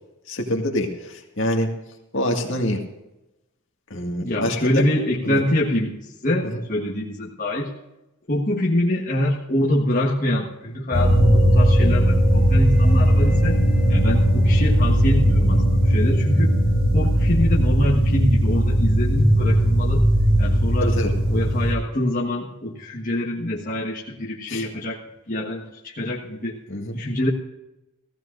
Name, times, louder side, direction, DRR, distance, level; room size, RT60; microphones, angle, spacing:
voice 1, 0.3-1.7 2.1-2.8 3.9-4.9 5.2-5.4 20.8-21.1 24.5-24.6 26.7-27.0, left 1 dB, 60° left, 2 dB, 2.0 m, -25 dB
voice 2, 4.2-7.7 8.3-13.6 13.9-16.5 16.9-20.1 20.4-20.9 21.3-25.0 25.3-26.6 26.9-27.3, left 1 dB, 40° left, -4 dB, 1.5 m, -25 dB
sound 1, 10.9-21.7, equal, 10° right, 3.3 m, -18 dB
17.0 x 15.5 x 2.6 m, 0.95 s
head